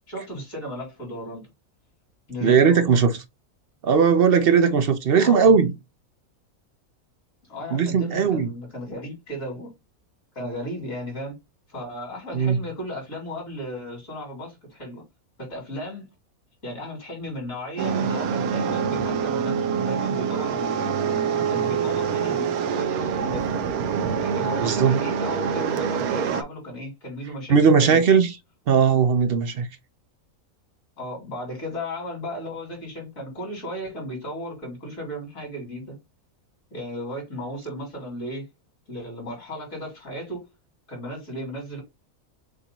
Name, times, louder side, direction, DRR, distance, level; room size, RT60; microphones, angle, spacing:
voice 1, 0.1-1.5 2.3-3.0 5.2-5.6 7.5-9.7 10.3-11.4 11.7-15.0 15.4-16.0 16.6-20.9 21.5-23.5 24.2-28.0 31.0-36.0 36.7-38.5 38.9-40.5 40.9-41.8, equal, 65° left, 3.4 m, -35 dB
voice 2, 2.4-3.2 3.8-5.7 7.7-8.5 12.3-12.6 24.6-25.0 27.5-28.3 28.7-29.7, right 6 dB, 55° right, 0.7 m, -18 dB
sound 1, 17.8-26.4, right 6 dB, 85° right, 1.2 m, -25 dB
6.5 x 2.7 x 3.0 m
omnidirectional pair, 1.5 m